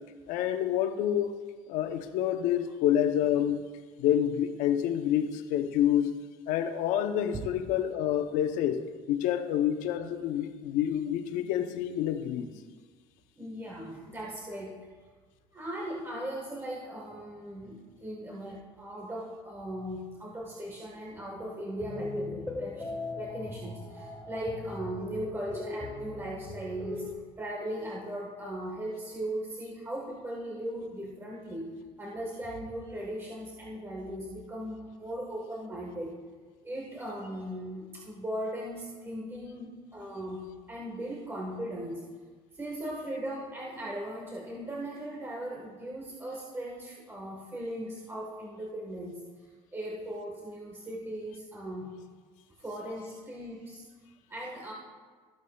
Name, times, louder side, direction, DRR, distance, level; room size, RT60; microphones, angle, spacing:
voice 1, 0.3-1.3 1.7-3.6 4.0-6.1 6.5-8.8 9.1-12.5, left 10 dB, 80° left, 0.7 m, -28 dB
voice 2, 13.4-14.8 15.5-27.1 27.4-36.2 36.6-42.1 42.5-51.9 52.6-53.8 54.3-54.7, right 1 dB, 20° right, 1.3 m, -38 dB
sound 1, 21.8-27.1, left 2 dB, 5° left, 1.7 m, -38 dB
13.5 x 8.3 x 2.3 m
supercardioid pair, 95°, 13 cm